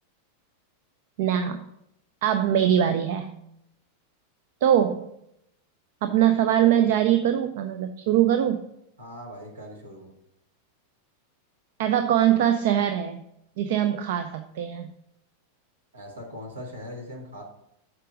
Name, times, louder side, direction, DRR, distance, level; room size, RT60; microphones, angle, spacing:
voice 1, 1.2-1.7 2.2-3.3 4.6-5.0 6.0-8.6 11.8-13.2 13.6-14.9, right 10 dB, 55° right, 8 dB, 0.5 m, -22 dB
voice 2, 9.0-10.1 15.9-17.4, left 1 dB, 70° right, 0 dB, 2.0 m, -40 dB
6.7 x 4.9 x 6.1 m, 0.79 s
figure-of-eight pair, 90°, 0 cm